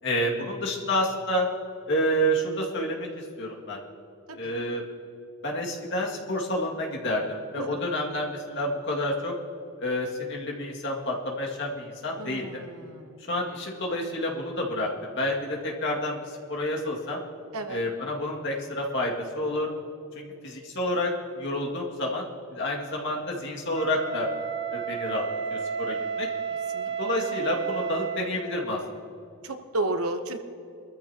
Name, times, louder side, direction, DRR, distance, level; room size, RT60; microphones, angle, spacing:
voice 1, 0.0-1.5 1.9-3.8 4.4-4.8 5.4-9.3 9.8-12.5 13.3-17.2 17.7-19.7 20.2-22.3 22.5-24.3 24.7-25.2 25.5-26.3 27.0-28.8, left 1 dB, 55° left, -1 dB, 2.2 m, -29 dB
voice 2, 12.2-13.3 17.5-17.8 26.7-26.9 29.4-30.4, right 2 dB, 85° right, 7 dB, 1.1 m, -32 dB
Wind instrument woodwind instrument, 23.7-28.4, right 6 dB, 55° right, 1.3 m, -32 dB
22.5 x 14.0 x 2.9 m, 2.6 s
head